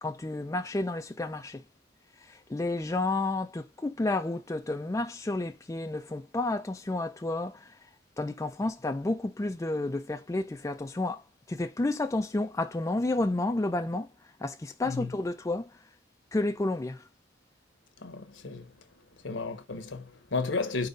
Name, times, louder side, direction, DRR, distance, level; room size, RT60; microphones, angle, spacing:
voice 1, 0.0-1.6 2.2-7.8 8.2-11.2 11.5-14.1 14.4-15.7 16.3-17.0, left 2 dB, 15° left, 0.4 m, -31 dB
voice 2, 18.0-18.7 19.2-20.9, left 4 dB, 75° left, 1.0 m, -33 dB
4.7 x 4.0 x 5.1 m
head